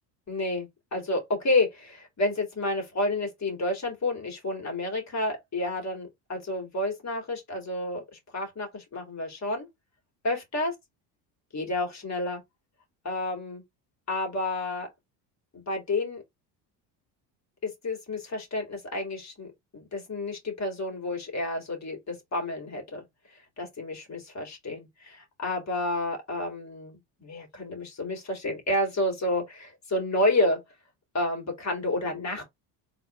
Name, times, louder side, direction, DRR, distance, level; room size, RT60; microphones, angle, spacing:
voice 1, 0.3-9.7 10.2-10.7 11.5-12.4 13.0-13.6 14.1-14.9 15.5-16.2 17.6-19.5 19.7-23.0 23.6-30.6 31.1-32.4, left 2 dB, 35° left, 2.3 m, -30 dB
3.9 x 2.8 x 3.2 m
supercardioid pair, 85°, 49 cm